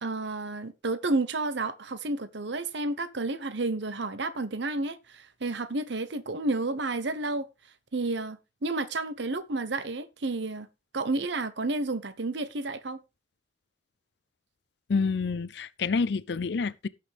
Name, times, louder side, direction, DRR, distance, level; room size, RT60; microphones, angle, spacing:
voice 1, 0.0-7.5 7.9-10.7 10.9-13.0, right 2 dB, 65° right, 0.9 m, -31 dB
voice 2, 14.9-16.9, left 4 dB, 55° left, 0.5 m, -28 dB
18.0 x 5.9 x 3.4 m
head